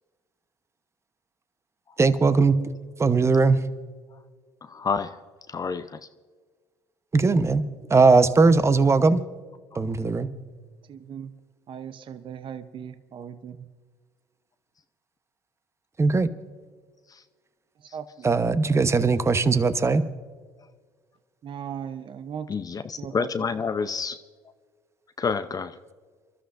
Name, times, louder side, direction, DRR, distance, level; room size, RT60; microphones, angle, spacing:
voice 1, 2.0-2.6 3.0-3.6 7.1-7.6 7.9-9.2 9.7-10.3 16.0-16.3 18.2-20.0, right 4 dB, 25° right, 12 dB, 1.0 m, -19 dB
voice 2, 4.6-5.2 5.5-6.0 9.7-9.8 17.1-17.2 22.5-24.2 25.2-25.8, left 5 dB, 35° left, 10 dB, 0.6 m, -29 dB
voice 3, 10.9-11.3 11.7-13.7 17.9-18.3 21.4-22.5 23.0-23.3, right 8 dB, 50° right, 11 dB, 0.8 m, -38 dB
28.0 x 13.0 x 2.6 m, 1.5 s
hypercardioid pair, 70°, 11 cm